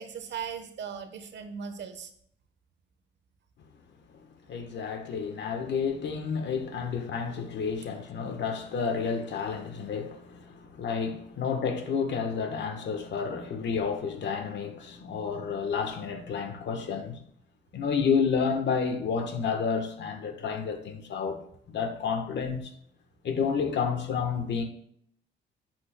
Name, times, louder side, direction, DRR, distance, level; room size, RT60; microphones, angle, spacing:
voice 1, 0.0-2.1 16.5-16.6, right 7 dB, 65° right, 1.1 m, -38 dB
voice 2, 4.5-17.2 17.7-21.4 21.7-22.7 23.2-24.6, left 6 dB, 65° left, 1.2 m, -30 dB
10.5 x 7.5 x 2.2 m
cardioid pair, 90°, 20 cm